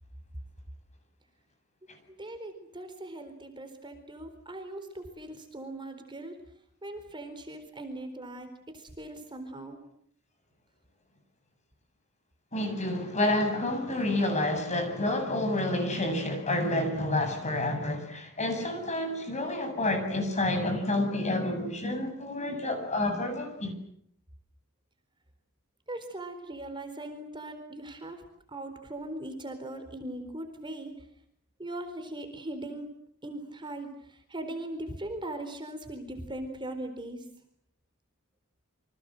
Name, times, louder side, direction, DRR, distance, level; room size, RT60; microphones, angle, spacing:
voice 1, 2.2-6.4 6.8-9.8 25.9-28.2 28.5-30.9 31.6-32.9 33.2-37.2, right 1 dB, 20° right, 4.2 m, -40 dB
voice 2, 12.5-23.7, left 1 dB, 30° left, 7.8 m, -29 dB
29.0 x 26.0 x 7.8 m
head